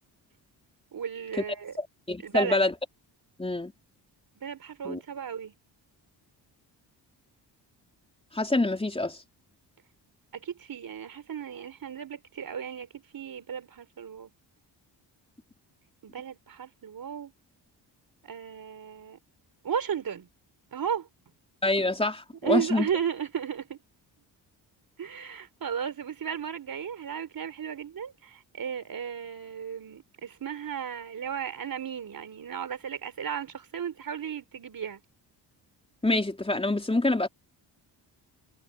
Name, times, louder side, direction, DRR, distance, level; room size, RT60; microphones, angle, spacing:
voice 1, 0.9-1.7 2.2-2.7 4.4-5.5 10.3-14.3 16.0-17.3 18.2-19.2 19.6-20.3 20.7-21.1 22.4-23.8 25.0-35.0, right 8 dB, 50° right, 4.6 m, -35 dB
voice 2, 1.8-2.7 3.4-3.7 4.8-5.0 8.3-9.2 21.6-22.9 36.0-37.3, left 2 dB, 15° left, 3.6 m, -26 dB
cardioid pair, 95°, 43 cm